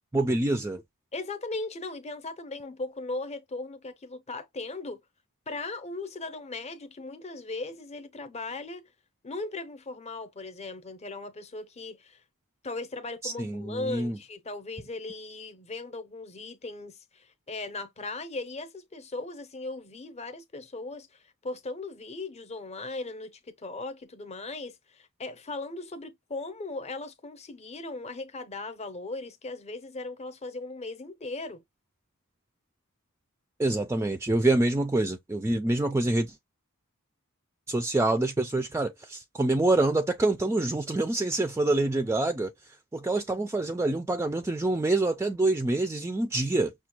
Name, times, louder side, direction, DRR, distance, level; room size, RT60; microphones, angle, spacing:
voice 1, 0.1-0.8 13.2-14.2 33.6-36.4 37.7-46.7, right 2 dB, 10° right, 0.3 m, -26 dB
voice 2, 1.1-5.0 5.5-8.9 9.2-12.2 12.6-31.6, left 2 dB, 30° left, 0.7 m, -38 dB
6.0 x 2.3 x 2.9 m
head